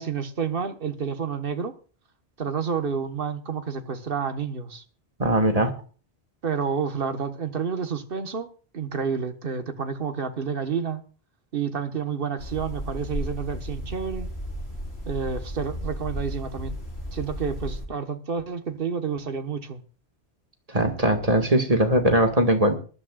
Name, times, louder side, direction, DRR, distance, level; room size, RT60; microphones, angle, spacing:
voice 1, 0.0-1.7 2.4-4.8 6.4-8.5 8.7-11.0 11.5-14.3 15.1-16.8 17.1-19.8, right 6 dB, 60° right, 1.5 m, -29 dB
voice 2, 5.2-5.7 20.7-22.8, right 1 dB, 35° right, 1.9 m, -20 dB
sound 1, 12.4-17.9, equal, 80° left, 5.2 m, -34 dB
23.0 x 11.5 x 2.4 m
omnidirectional pair, 1.1 m